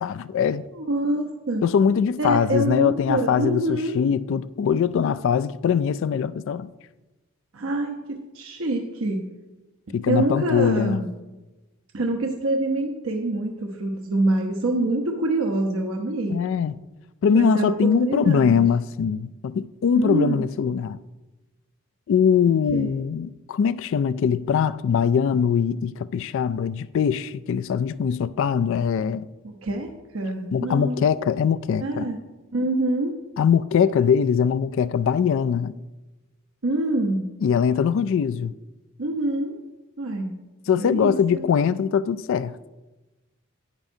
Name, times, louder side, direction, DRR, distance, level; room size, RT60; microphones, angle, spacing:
voice 1, 0.0-0.6 1.6-6.7 9.9-11.0 16.3-16.7 17.2-21.0 22.1-29.3 30.5-32.1 33.4-35.7 37.4-38.5 40.7-42.7, left 7 dB, 65° left, 0.3 m, -22 dB
voice 2, 0.7-1.6 2.2-4.0 7.5-9.3 9.9-11.1 11.9-16.4 17.3-18.6 19.9-20.4 22.7-22.9 29.4-29.9 30.1-31.0 31.8-32.2 32.5-33.2 36.6-37.3 39.0-39.5 40.0-40.4 40.8-41.4, right 2 dB, 80° right, 0.9 m, -26 dB
10.5 x 9.9 x 2.7 m
head